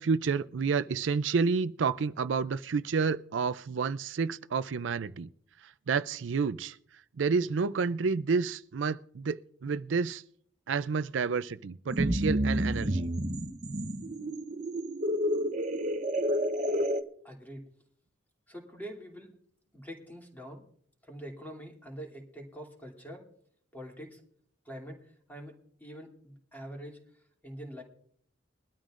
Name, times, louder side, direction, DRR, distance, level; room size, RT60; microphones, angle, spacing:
voice 1, 0.0-5.3 5.9-6.8 7.2-10.2 10.7-13.1, right 5 dB, 75° right, 0.5 m, -29 dB
sound 1, 11.9-17.0, equal, 40° right, 0.9 m, -30 dB
voice 2, 17.2-17.6 18.5-19.3 19.7-20.6 21.1-23.3 23.7-24.2 24.6-25.0 25.3-27.0 27.4-27.8, equal, 10° left, 2.8 m, -44 dB
22.0 x 12.5 x 2.5 m
head